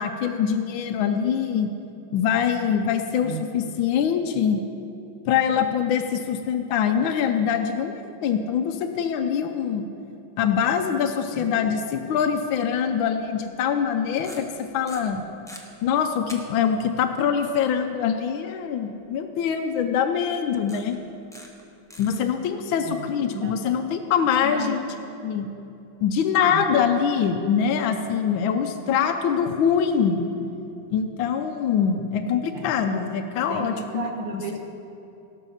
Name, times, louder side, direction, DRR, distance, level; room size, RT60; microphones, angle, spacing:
voice 1, 0.0-1.7 2.1-4.6 5.3-9.9 10.4-14.5 14.7-15.2 15.8-21.0 22.0-24.8 25.2-25.5 26.0-30.2 30.9-34.0 34.3-34.4, left 7 dB, 75° left, 5 dB, 1.4 m, -24 dB
sound 1, 12.9-13.0 14.1-14.6 14.9-15.6 16.3-16.4 16.7-16.8 19.7-19.8 20.7-20.9 21.3-21.6 21.9-22.2, left 1 dB, 5° left, 0.6 m, -42 dB
voice 2, 24.4-24.8 26.5-26.6 32.5-32.8 33.5-33.7 33.9-34.7, right 4 dB, 70° right, 3 dB, 1.9 m, -33 dB
18.0 x 6.5 x 5.7 m, 2.8 s
omnidirectional pair, 2.2 m